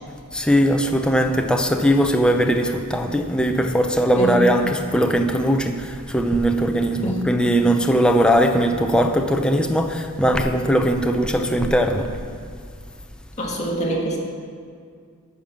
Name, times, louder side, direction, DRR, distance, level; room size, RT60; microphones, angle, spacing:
voice 1, 0.3-12.1, equal, 5° left, 4 dB, 0.6 m, -19 dB
voice 2, 4.1-4.5 7.0-7.3 13.4-14.2, equal, 35° left, -2 dB, 1.7 m, -24 dB
10.0 x 5.3 x 7.2 m, 2.2 s
head